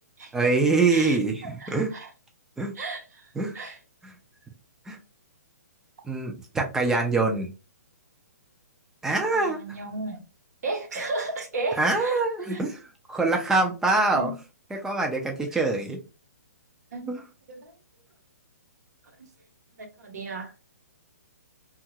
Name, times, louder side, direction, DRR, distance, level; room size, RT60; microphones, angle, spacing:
voice 1, 0.3-1.9 2.6-2.7 3.4-3.5 4.0-4.1 4.9-5.0 6.0-7.5 9.0-9.6 11.8-12.8 13.1-14.3 14.7-16.0 17.1-17.2, right 3 dB, 5° right, 0.5 m, -24 dB
voice 2, 0.9-2.1 2.7-3.8 9.1-10.2 10.6-12.2 12.5-12.6 14.1-14.4 16.9-17.2 17.5-17.7 19.2-19.3 19.8-20.5, right 2 dB, 75° right, 0.9 m, -34 dB
2.8 x 2.4 x 2.7 m
hypercardioid pair, 150°, 9 cm